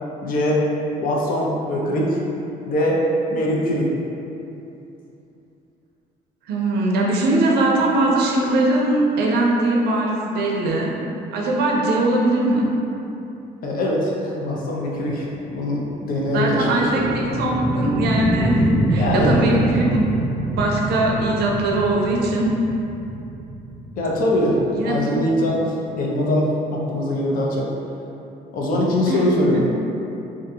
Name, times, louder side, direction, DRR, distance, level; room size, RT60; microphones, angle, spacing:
voice 1, 0.2-0.6 1.0-2.2 2.6-3.0 3.3-3.9 13.6-17.0 18.9-19.4 24.0-24.6 24.8-27.7 28.5-29.7, left 1 dB, 55° left, -3 dB, 0.5 m, -22 dB
voice 2, 6.5-10.9 11.3-12.7 16.3-20.1 20.5-22.6 24.7-25.0 29.1-29.2, right 2 dB, 70° right, -2 dB, 0.5 m, -20 dB
sound 1, 14.8-25.5, right 1 dB, 10° left, 0.6 m, -26 dB
2.5 x 2.2 x 2.7 m, 2.8 s
cardioid pair, 110°, 17 cm